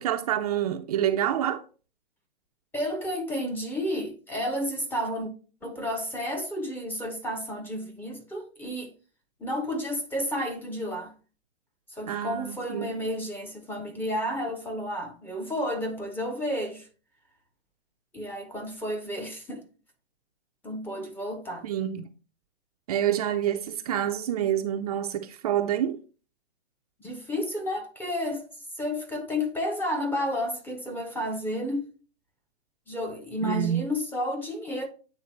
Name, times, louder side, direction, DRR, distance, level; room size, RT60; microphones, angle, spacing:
voice 1, 0.0-1.6 12.1-12.9 21.6-22.1 22.9-26.0 33.4-33.8, right 10 dB, 35° right, 0.5 m, -27 dB
voice 2, 2.7-5.3 5.6-8.9 9.4-11.1 11.9-16.9 18.1-19.6 20.6-21.7 27.0-28.5 28.8-31.9 32.9-34.9, equal, 5° left, 0.7 m, -31 dB
8.6 x 3.3 x 4.4 m
hypercardioid pair, 130°, 34 cm